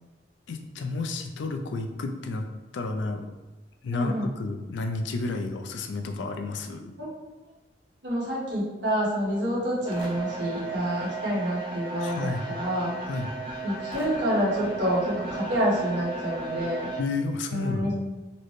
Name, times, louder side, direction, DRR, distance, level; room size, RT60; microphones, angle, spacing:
voice 1, 0.5-2.4 2.7-3.3 3.8-6.9 12.0-12.4 13.1-13.3 17.0-17.9, left 3 dB, 80° left, 5 dB, 0.4 m, -31 dB
voice 2, 3.9-4.3 7.0-7.1 8.0-12.9 13.6-16.9 17.5-17.9, equal, 75° right, -7 dB, 1.3 m, -28 dB
sound 1, 9.8-17.0, right 3 dB, 30° right, 0.8 m, -35 dB
4.0 x 2.1 x 3.1 m, 1.2 s
head